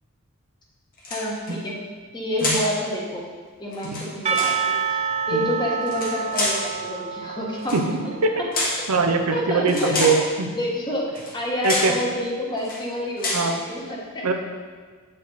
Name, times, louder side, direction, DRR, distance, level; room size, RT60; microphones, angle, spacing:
sound 1, 1.0-1.5 2.4-2.7 3.7-4.6 5.8-6.7 7.6-7.9 8.5-8.9 9.7-10.3 11.1-11.4 11.6-12.0 12.6-12.8 13.2-13.5, left 2 dB, 40° left, 1.6 m, -27 dB
voice 1, 1.1-1.8 2.1-3.2 3.6-5.0 5.3-7.8 8.0-8.1 8.4-8.5 9.3-10.2 10.5-11.1 11.3-14.3, left 1 dB, 20° left, -3 dB, 1.3 m, -28 dB
Percussion / Church bell, 4.3-9.0, right 6 dB, 30° right, 0.3 m, -28 dB
voice 2, 8.9-10.5 11.6-11.9 13.3-13.6 14.2-14.3, right 4 dB, 85° right, 4 dB, 0.8 m, -22 dB
8.1 x 5.3 x 4.0 m, 1.5 s
head